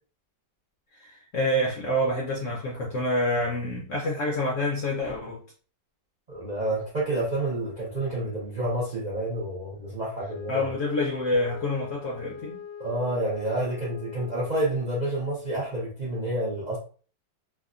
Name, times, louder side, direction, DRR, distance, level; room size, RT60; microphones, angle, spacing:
voice 1, 0.9-5.4 10.5-12.6, left 1 dB, 65° left, -2 dB, 0.7 m, -27 dB
voice 2, 6.3-10.7 12.8-16.8, right 1 dB, 75° right, -5 dB, 0.4 m, -29 dB
Wind instrument woodwind instrument, 10.2-14.8, left 8 dB, 90° left, 1.4 m, -41 dB
3.4 x 2.1 x 2.4 m, 0.39 s
omnidirectional pair, 1.9 m